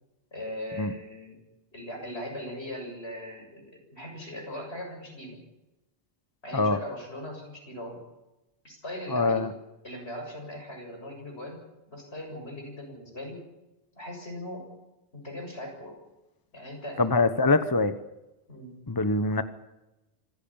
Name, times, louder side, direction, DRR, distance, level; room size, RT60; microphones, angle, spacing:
voice 1, 0.3-1.4 1.7-5.4 6.4-8.0 8.6-9.5 9.8-11.6 11.9-13.4 14.0-14.7 15.1-15.9 16.5-17.0 18.5-18.8, left 1 dB, 75° left, 2 dB, 7.4 m, -39 dB
voice 2, 9.1-9.5 17.0-17.9 18.9-19.4, left 3 dB, 20° left, 11 dB, 1.0 m, -23 dB
26.0 x 16.0 x 8.9 m, 0.98 s
omnidirectional pair, 1.1 m